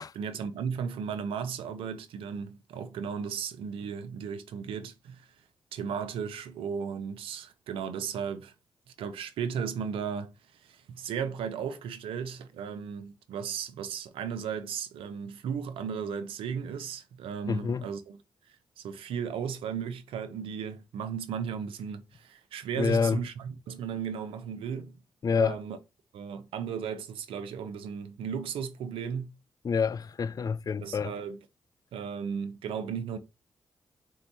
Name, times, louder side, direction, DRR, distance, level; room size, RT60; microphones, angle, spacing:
voice 1, 0.1-5.3 5.7-8.5 9.0-18.2 18.8-25.0 25.4-25.8 26.1-29.3 30.8-31.4 31.9-33.2, right 7 dB, 85° right, 0.6 m, -35 dB
voice 2, 17.5-17.9 22.8-23.2 25.2-25.6 29.6-31.1, left 5 dB, 45° left, 0.3 m, -27 dB
4.3 x 2.8 x 4.0 m
supercardioid pair, 45°, 9 cm